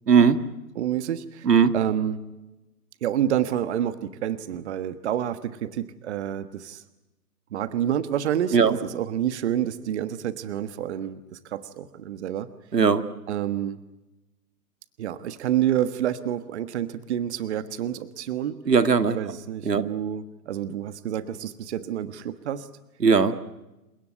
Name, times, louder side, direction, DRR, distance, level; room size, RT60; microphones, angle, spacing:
voice 1, 0.1-0.4 1.4-1.7 8.5-8.8 12.7-13.1 18.7-19.2 19.7-19.8 23.0-23.3, right 6 dB, 80° right, 11 dB, 1.9 m, -18 dB
voice 2, 0.7-1.5 1.7-2.2 3.0-6.8 7.5-12.5 13.3-13.8 15.0-18.6 19.1-22.7, right 10 dB, 45° right, 13 dB, 1.4 m, -28 dB
29.0 x 17.0 x 9.4 m, 1.0 s
figure-of-eight pair, 130°, 47 cm